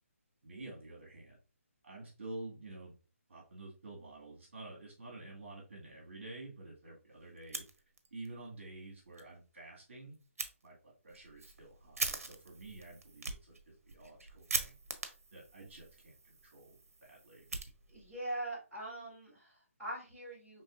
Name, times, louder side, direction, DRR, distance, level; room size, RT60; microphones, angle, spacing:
voice 1, 0.4-1.4 1.8-2.9 3.3-7.7 8.1-10.2 10.6-14.8 15.3-17.5, right 2 dB, 55° right, -2 dB, 1.9 m, -50 dB
Fire, 7.4-8.3 8.6-8.7 9.1-9.2 10.4-10.5 11.1-18.2, right 3 dB, 75° right, 0.9 m, -42 dB
voice 2, 17.9-20.6, right 1 dB, 5° right, -15 dB, 2.3 m, -42 dB
5.3 x 3.2 x 2.5 m, 0.33 s
hypercardioid pair, 180°, 8 cm